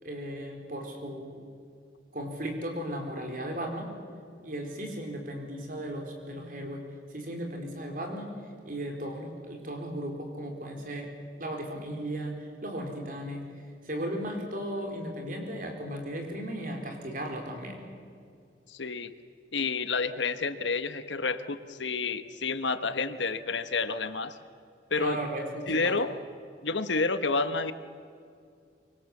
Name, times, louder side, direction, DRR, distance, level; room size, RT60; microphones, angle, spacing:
voice 1, 0.0-1.5 2.1-3.9 4.4-8.4 8.6-13.5 13.8-17.8 24.9-26.0, right 1 dB, 45° right, 3 dB, 4.4 m, -36 dB
voice 2, 18.7-19.1 19.5-24.4 24.9-25.2 25.7-26.2 26.6-27.7, left 4 dB, 80° left, 11 dB, 1.3 m, -29 dB
25.0 x 24.0 x 7.3 m, 2.4 s
head